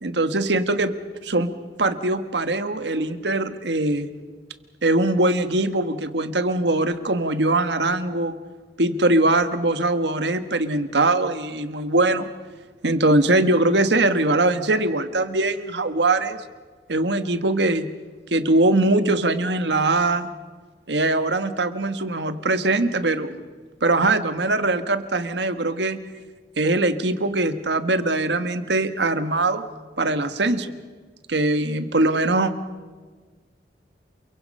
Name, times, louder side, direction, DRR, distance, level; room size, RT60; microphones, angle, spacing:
voice 1, 0.0-0.9 1.2-1.5 1.8-4.1 4.8-8.3 8.8-12.3 12.8-16.4 16.9-17.9 18.3-20.3 20.9-23.4 23.8-26.0 26.6-29.6 30.0-30.7 31.3-32.5, right 2 dB, 75° right, 10 dB, 1.5 m, -21 dB
29.0 x 23.0 x 5.6 m, 1.4 s
head